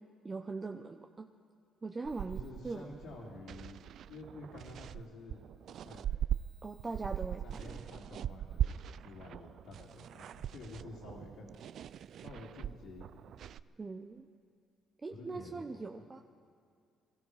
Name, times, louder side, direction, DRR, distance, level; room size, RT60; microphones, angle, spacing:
voice 1, 0.2-1.3 1.8-3.0 6.6-7.8 13.8-14.3 15.0-16.2, right 3 dB, 30° right, 5 dB, 0.7 m, -41 dB
sound 1, 2.0-6.4 6.8-13.6, right 10 dB, 65° right, 0.3 m, -40 dB
voice 2, 2.3-5.4 5.8-6.1 7.4-11.5 12.2-13.4 15.1-15.8, left 2 dB, 80° left, -9 dB, 2.7 m, -50 dB
21.5 x 14.0 x 4.8 m, 2.3 s
supercardioid pair, 60°, 0 cm